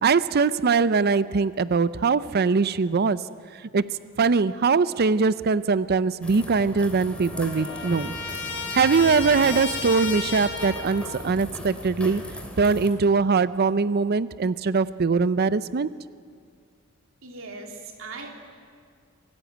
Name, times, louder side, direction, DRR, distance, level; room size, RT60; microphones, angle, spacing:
voice 1, 0.0-3.2 3.5-8.1 8.7-12.2 12.6-15.9, right 4 dB, 50° right, 16 dB, 0.5 m, -22 dB
sound 1, 6.2-12.9, equal, 5° left, 2.7 m, -38 dB
Trumpet, 6.4-6.5 6.7-11.1, left 4 dB, 60° left, 3.2 m, -33 dB
voice 2, 17.2-18.3, right 3 dB, 70° right, 3 dB, 3.1 m, -39 dB
26.5 x 16.0 x 9.2 m, 2.1 s
head